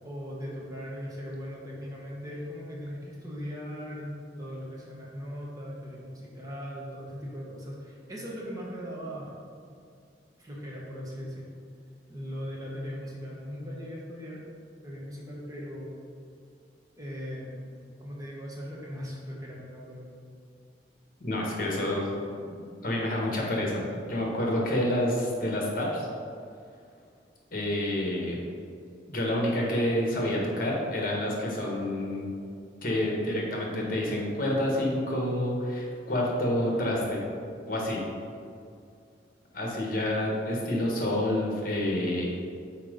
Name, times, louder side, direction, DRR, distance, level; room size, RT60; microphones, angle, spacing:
voice 1, 0.0-9.4 10.4-11.5 12.1-14.5 14.8-16.0 17.0-17.7 18.0-20.2, equal, 20° right, -4 dB, 1.1 m, -39 dB
voice 2, 21.2-23.8 24.1-26.1 27.5-28.4 29.1-32.2 32.8-37.2 37.7-38.0 39.5-42.3, left 1 dB, 50° left, -2 dB, 1.3 m, -28 dB
5.8 x 4.5 x 5.1 m, 2.3 s
head